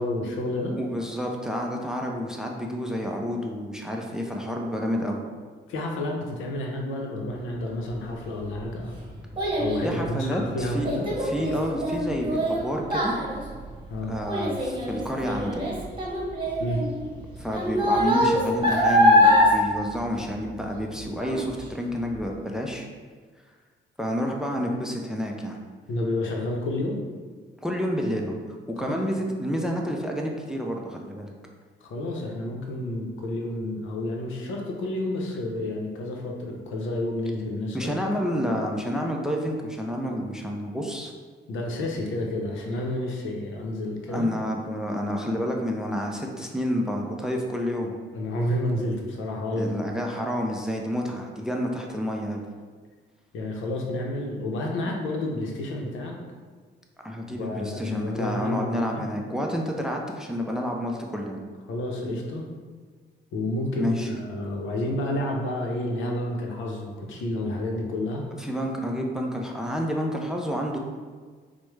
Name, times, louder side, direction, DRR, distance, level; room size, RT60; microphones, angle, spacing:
voice 1, 0.0-0.8 5.7-8.9 9.6-11.1 13.9-14.1 16.6-16.9 25.9-27.0 28.8-29.0 31.8-38.0 41.5-44.3 48.1-49.7 53.3-56.2 57.3-59.0 61.7-62.4 63.3-68.3, left 1 dB, 80° left, 0 dB, 0.7 m, -30 dB
voice 2, 0.7-5.2 9.8-10.9 11.2-13.1 14.1-15.7 17.4-22.9 24.0-25.6 27.6-28.4 28.8-31.3 37.7-41.1 44.1-47.9 49.6-52.4 57.0-61.4 63.7-64.2 68.4-70.8, equal, 5° right, 1 dB, 0.4 m, -29 dB
Child speech kid speaking, 8.2-20.8 21.2-21.6 22.1-22.2, equal, 25° right, 1.0 m, -24 dB
4.6 x 2.1 x 3.1 m, 1.5 s
cardioid pair, 90°, 20 cm